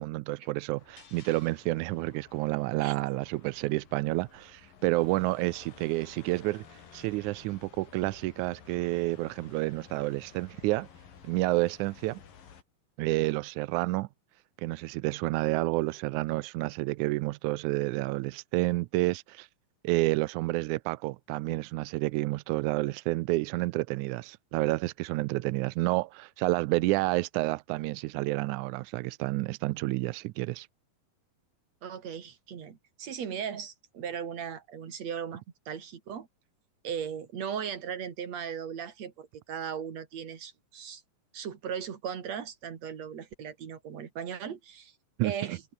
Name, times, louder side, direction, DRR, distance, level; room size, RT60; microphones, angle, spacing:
voice 1, 0.0-10.9 11.2-12.2 13.0-14.1 14.6-19.5 19.8-30.7 45.2-45.6, right 20 dB, 85° right, 1.7 m, -29 dB
sound 1, 0.8-12.6, left 7 dB, 75° left, 4.9 m, -54 dB
voice 2, 31.8-36.3 36.8-41.0 41.3-44.9 45.2-45.6, right 8 dB, 50° right, 3.5 m, -37 dB
omnidirectional pair, 4.1 m